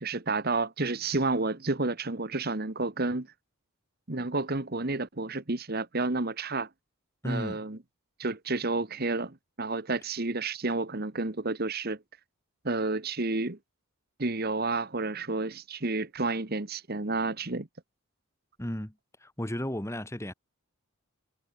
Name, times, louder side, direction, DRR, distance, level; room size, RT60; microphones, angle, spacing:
voice 1, 0.0-3.3 4.1-6.7 7.2-7.8 8.2-12.0 12.6-13.6 14.2-17.7, right 3 dB, 45° right, 1.5 m, -30 dB
voice 2, 7.2-7.6 18.6-18.9 19.2-20.3, equal, 15° left, 2.0 m, -33 dB
head